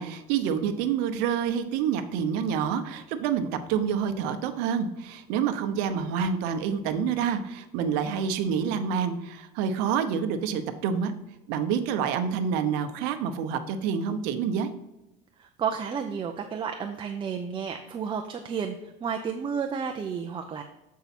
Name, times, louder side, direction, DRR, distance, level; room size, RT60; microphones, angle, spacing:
voice 1, 0.0-11.1 11.5-14.7, right 7 dB, 75° right, 8 dB, 0.8 m, -27 dB
voice 2, 15.4-20.6, right 6 dB, 30° right, 5 dB, 0.6 m, -32 dB
8.1 x 4.7 x 4.2 m, 0.97 s
supercardioid pair, 120°, 17 cm